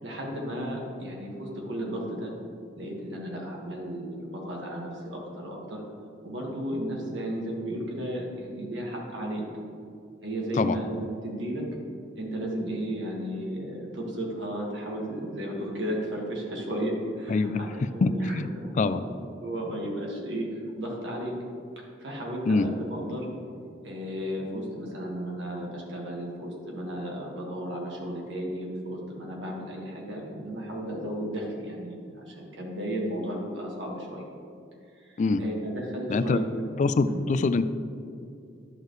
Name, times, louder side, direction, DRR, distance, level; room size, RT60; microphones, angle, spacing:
voice 1, 0.0-2.3 2.7-5.8 6.2-9.4 10.2-11.7 12.1-20.5 20.8-21.3 21.7-23.2 23.8-34.2 35.0-36.6 37.1-37.2, equal, 70° right, -1 dB, 1.7 m, -34 dB
voice 2, 17.3-17.7 18.0-18.5 18.8-19.0 22.5-22.7 35.2-35.4 36.1-36.4 36.8-37.6, left 3 dB, 40° left, 12 dB, 0.3 m, -24 dB
11.0 x 6.7 x 3.2 m, 2.5 s
head